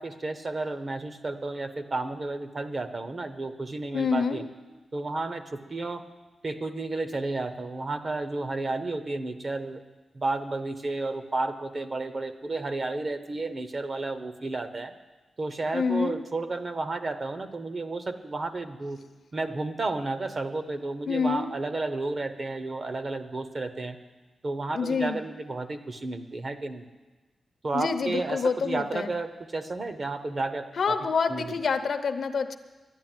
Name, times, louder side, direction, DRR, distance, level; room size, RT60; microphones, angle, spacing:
voice 1, 0.0-4.4 4.9-6.0 6.4-9.8 10.1-14.9 15.4-19.0 19.3-24.0 24.4-26.9 27.6-31.0 31.3-31.6, right 3 dB, 30° right, 9 dB, 0.8 m, -32 dB
voice 2, 3.9-4.4 15.7-16.2 21.1-21.5 24.7-25.2 27.7-29.1 30.8-32.6, left 5 dB, 50° left, 9 dB, 0.7 m, -27 dB
11.5 x 10.5 x 8.9 m, 1.2 s
wide cardioid pair, 180°, 0 cm